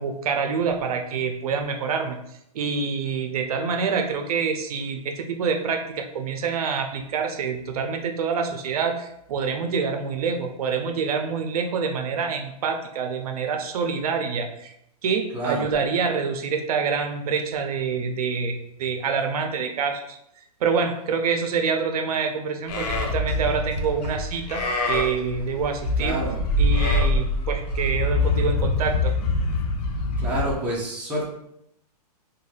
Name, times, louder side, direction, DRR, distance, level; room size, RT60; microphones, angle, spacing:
voice 1, 0.0-2.2 2.5-14.7 15.0-20.2 20.6-26.2 26.6-29.1, right 5 dB, 65° right, 5 dB, 0.5 m, -26 dB
voice 2, 15.3-15.6 26.0-26.3 30.2-31.3, right 1 dB, 5° right, -5 dB, 0.5 m, -27 dB
Livestock farm animals working animals, 22.7-30.5, left 2 dB, 75° left, 0.6 m, -24 dB
2.6 x 2.2 x 3.2 m, 0.78 s
hypercardioid pair, 150°, 20 cm